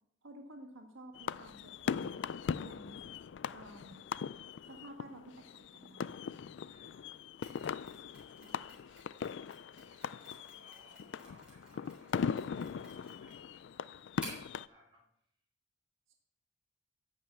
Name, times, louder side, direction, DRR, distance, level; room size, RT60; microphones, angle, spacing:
voice 1, 0.2-2.3 2.6-3.0 3.5-4.0 4.7-6.0 8.4-8.6 16.1-16.2, right 1 dB, 90° right, 2 dB, 1.6 m, -52 dB
sound 1, 1.2-14.7, left 6 dB, 65° left, 0.3 m, -40 dB
voice 2, 6.7-8.3 8.9-9.4 10.1-15.4, right 1 dB, 25° right, -4 dB, 4.7 m, -67 dB
Mechanisms, 7.4-14.6, right 1 dB, 5° right, 3.7 m, -54 dB
11.0 x 5.4 x 8.1 m, 0.74 s
head